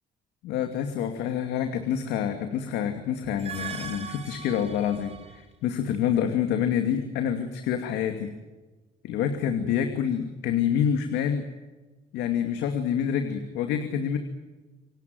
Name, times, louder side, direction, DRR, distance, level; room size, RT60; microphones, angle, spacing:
voice 1, 0.4-8.3 9.0-11.5 12.1-14.2, left 8 dB, 85° left, 6 dB, 2.5 m, -27 dB
sound 1, 3.2-5.5, right 7 dB, 40° right, 3.1 m, -40 dB
28.0 x 17.5 x 9.3 m, 1.2 s
cardioid pair, 110°, 17 cm